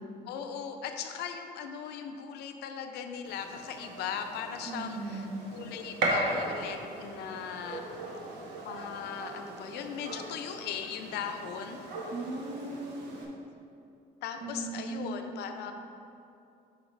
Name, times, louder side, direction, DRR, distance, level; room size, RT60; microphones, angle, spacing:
voice 1, 0.3-7.8 8.6-11.8 14.2-15.7, left 7 dB, 80° left, 6 dB, 0.6 m, -38 dB
Gunshot gunfire, 3.3-13.2, right 2 dB, 90° right, 1.1 m, -38 dB
voice 2, 4.7-5.4 12.1-13.3 14.4-15.3, right 3 dB, 55° right, 0 dB, 1.1 m, -38 dB
7.8 x 4.9 x 3.2 m, 2.6 s
cardioid pair, 110°, 17 cm